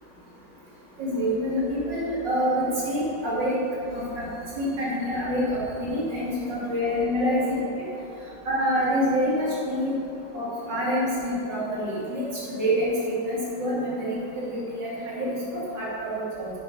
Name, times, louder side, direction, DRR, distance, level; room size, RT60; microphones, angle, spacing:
voice 1, 1.0-3.6 3.9-4.3 4.6-7.8 8.5-9.9 10.3-16.5, equal, 75° right, -7 dB, 3.6 m, -27 dB
11.0 x 9.2 x 5.2 m, 2.8 s
omnidirectional pair, 2.0 m